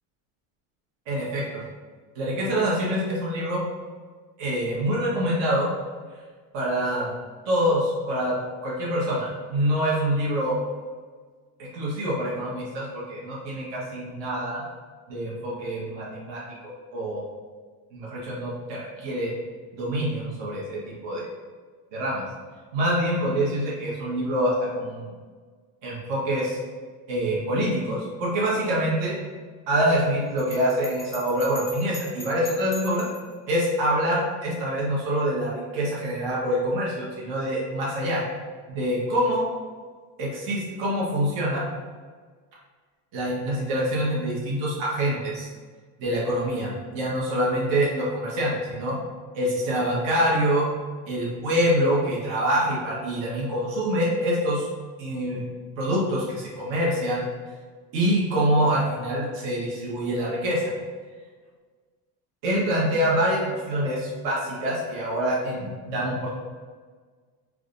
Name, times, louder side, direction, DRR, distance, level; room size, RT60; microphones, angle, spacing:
voice 1, 1.1-1.6 2.1-3.6 4.4-5.7 6.5-7.1 7.4-8.3 8.6-10.6 11.6-14.6 15.1-17.2 17.9-19.3 19.7-21.3 21.9-22.2 22.7-25.1 25.8-26.6 27.1-29.1 29.7-33.0 33.5-38.2 38.7-39.4 40.2-41.7 43.1-45.5 46.0-49.0 49.3-50.7 51.1-54.7 55.0-55.4 55.8-57.3 57.9-60.6 62.4-66.3, equal, 75° right, -5 dB, 1.2 m, -25 dB
Bell, 30.4-33.3, left 2 dB, 5° left, 0.5 m, -41 dB
4.7 x 2.3 x 2.5 m, 1.5 s
cardioid pair, 135°, 43 cm